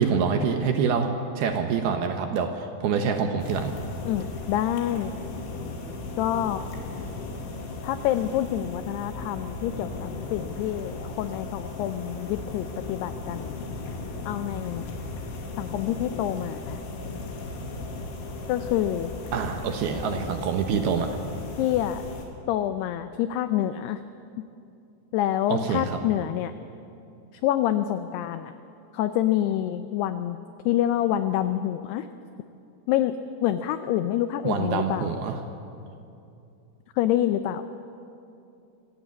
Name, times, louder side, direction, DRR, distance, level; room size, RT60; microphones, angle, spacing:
voice 1, 0.0-3.7 19.3-21.2 25.5-26.0 34.4-35.4, right 6 dB, 70° right, 5 dB, 2.5 m, -26 dB
sound 1, 3.4-22.3, left 3 dB, 75° left, 4.5 m, -36 dB
voice 2, 4.0-5.1 6.2-6.6 7.8-13.6 14.3-14.9 15.6-16.8 18.5-19.1 21.6-22.0 22.5-24.0 25.1-26.5 27.4-28.5 28.9-30.4 30.7-32.1 32.9-33.1 33.4-35.1 37.0-37.6, left 12 dB, 90° left, 10 dB, 2.3 m, -27 dB
25.0 x 15.5 x 8.7 m, 2.6 s
omnidirectional pair, 5.5 m